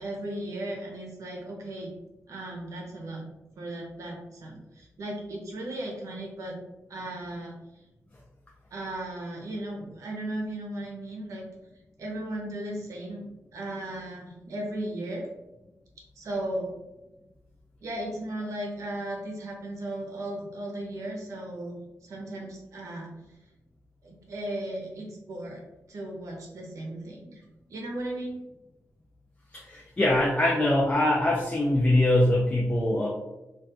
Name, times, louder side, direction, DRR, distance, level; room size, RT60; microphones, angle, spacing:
voice 1, 0.0-1.9 2.3-3.2 3.6-6.6 6.9-7.5 8.7-11.4 12.0-13.2 13.5-15.3 16.2-16.7 17.8-23.1 24.0-25.6 25.9-27.4 27.7-28.4, right 1 dB, 85° right, 0 dB, 0.7 m, -36 dB
voice 2, 29.5-33.1, left 1 dB, 25° left, -4 dB, 0.4 m, -23 dB
2.3 x 2.3 x 2.7 m, 1.0 s
wide cardioid pair, 110°, 5 cm